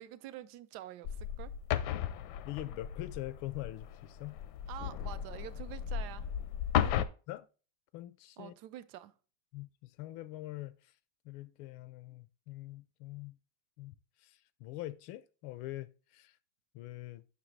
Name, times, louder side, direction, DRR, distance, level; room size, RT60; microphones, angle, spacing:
voice 1, 0.0-1.5 4.7-6.3 6.8-7.0 8.4-9.2, right 13 dB, 75° right, 0.9 m, -47 dB
sound 1, 1.0-7.1, left 10 dB, 75° left, 1.0 m, -35 dB
voice 2, 2.5-4.4 7.3-7.5 7.9-8.5 9.5-10.7 11.2-13.4 13.8-13.9 14.2-16.3 16.7-17.2, left 16 dB, 90° left, 1.4 m, -43 dB
7.5 x 5.8 x 3.1 m
omnidirectional pair, 2.2 m